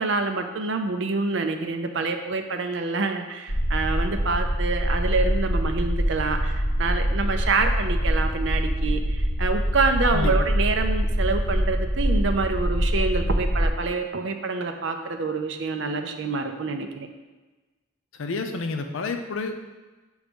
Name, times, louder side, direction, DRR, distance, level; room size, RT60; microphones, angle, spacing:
voice 1, 0.0-17.1, right 3 dB, 65° right, 6 dB, 0.6 m, -27 dB
sound 1, 3.5-13.7, equal, 55° left, 1.9 m, -24 dB
voice 2, 18.2-19.6, left 3 dB, 80° left, 6 dB, 0.6 m, -29 dB
7.2 x 3.2 x 5.2 m, 1.2 s
head